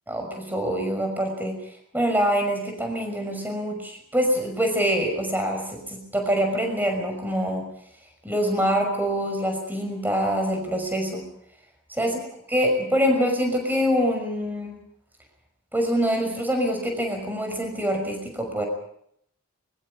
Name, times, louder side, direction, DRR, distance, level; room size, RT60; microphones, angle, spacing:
voice 1, 0.1-1.5 1.9-7.6 8.2-11.2 11.9-12.1 12.5-14.8 15.7-18.7, equal, 10° right, 4 dB, 5.8 m, -25 dB
24.0 x 23.5 x 5.3 m, 0.69 s
head